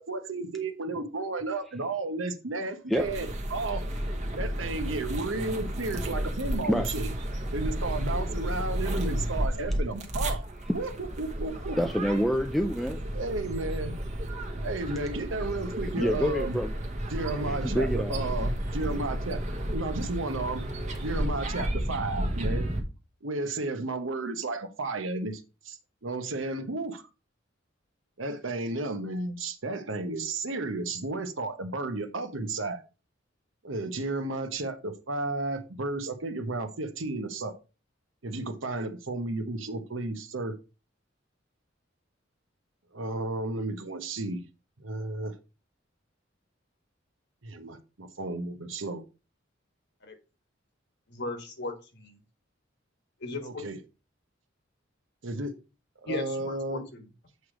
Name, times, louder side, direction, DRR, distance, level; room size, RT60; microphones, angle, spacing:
voice 1, 0.0-3.8 4.4-7.1 7.5-10.4 10.7-10.9 11.2-11.8 13.1-13.9 14.6-16.6 17.1-19.4 19.7-20.6 21.0-22.7 23.2-27.0 28.2-32.8 33.6-37.5 38.2-40.6 42.9-44.4 44.8-45.3 47.4-49.0 53.4-53.8 55.2-55.5 56.0-56.8, right 2 dB, 80° right, 1.0 m, -33 dB
sound 1, 2.9-22.8, right 1 dB, 40° right, 1.2 m, -32 dB
voice 2, 11.8-13.0 16.0-16.7 17.5-18.2, equal, ahead, 0.3 m, -27 dB
voice 3, 51.1-52.2 53.2-53.6 56.1-57.1, left 2 dB, 60° left, 1.5 m, -37 dB
8.1 x 3.2 x 5.0 m
head